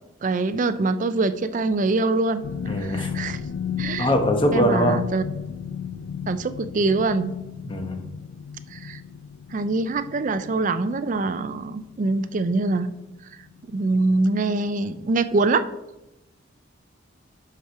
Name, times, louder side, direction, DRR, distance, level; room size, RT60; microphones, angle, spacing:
voice 1, 0.2-3.4 3.8-4.1 4.5-5.2 6.3-7.4 8.7-9.0 9.5-12.9 13.7-15.7, right 3 dB, 40° right, 13 dB, 0.4 m, -24 dB
sound 1, 2.4-13.1 13.4-13.7 14.1-14.3, left 7 dB, 85° left, 0.4 m, -34 dB
voice 2, 2.6-3.1 4.0-5.0 7.6-8.0, equal, 25° left, 4 dB, 1.0 m, -22 dB
6.1 x 5.6 x 5.6 m, 0.94 s
head